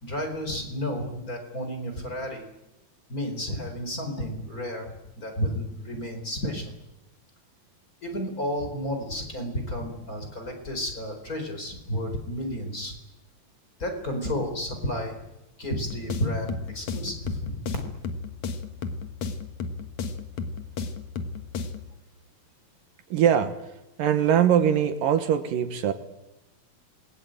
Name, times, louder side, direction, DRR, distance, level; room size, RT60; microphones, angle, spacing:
voice 1, 0.0-2.5 3.1-6.6 8.0-13.0 13.8-15.2 15.6-17.6, equal, 25° left, 4 dB, 4.5 m, -32 dB
sound 1, 15.7-21.9, left 4 dB, 55° left, 2.6 m, -34 dB
voice 2, 23.1-23.5 24.0-25.9, right 9 dB, 70° right, 9 dB, 2.8 m, -22 dB
27.5 x 20.5 x 9.0 m, 0.99 s
omnidirectional pair, 4.2 m